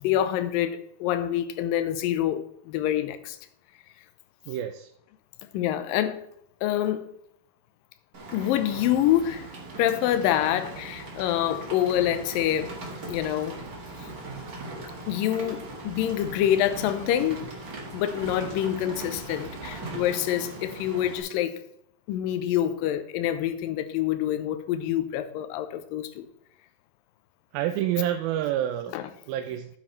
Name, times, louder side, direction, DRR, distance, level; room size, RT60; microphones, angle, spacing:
voice 1, 0.0-3.4 5.5-6.2 6.6-7.0 8.3-9.5 9.8-12.7 13.1-13.6 15.1-17.4 17.9-21.6 22.1-26.3 28.9-29.0, left 11 dB, 75° left, 2.2 m, -26 dB
voice 2, 4.5-4.9 27.5-28.9 29.3-29.7, right 11 dB, 80° right, 2.3 m, -28 dB
Rain, 8.1-21.2, right 2 dB, 40° right, 1.3 m, -39 dB
9.5 x 8.6 x 3.2 m
omnidirectional pair, 4.4 m